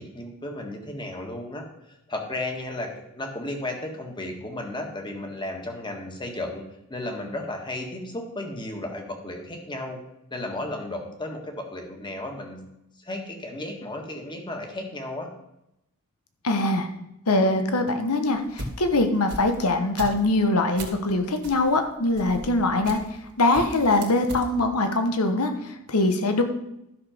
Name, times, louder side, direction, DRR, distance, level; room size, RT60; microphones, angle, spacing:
voice 1, 0.0-1.6 2.1-6.6 6.9-10.0 10.3-12.6 13.0-15.3, left 1 dB, 20° left, 3 dB, 1.6 m, -34 dB
voice 2, 16.4-16.9 17.3-23.0 23.4-26.4, left 2 dB, 90° left, 7 dB, 1.2 m, -23 dB
sound 1, 18.3-21.1 21.4-23.3 23.5-24.5, right 1 dB, 50° right, 1.9 m, -38 dB
12.0 x 6.3 x 5.1 m, 0.84 s
head